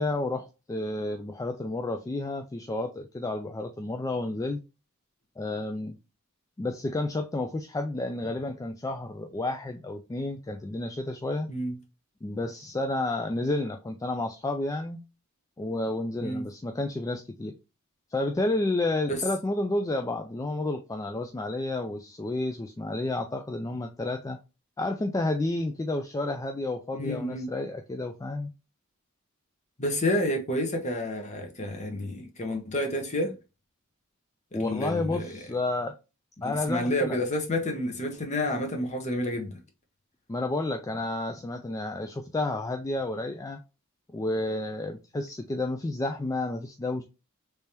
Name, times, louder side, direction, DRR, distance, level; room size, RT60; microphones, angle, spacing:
voice 1, 0.0-4.6 5.4-6.0 6.6-11.5 12.2-15.0 15.6-17.5 18.1-24.4 24.8-28.5 34.5-36.0 36.4-37.2 40.3-43.6 44.1-47.0, left 2 dB, 15° left, 0.3 m, -31 dB
voice 2, 26.9-27.5 29.8-33.3 34.5-35.4 36.4-39.5, left 1 dB, 35° left, 1.0 m, -29 dB
3.4 x 3.3 x 2.8 m
head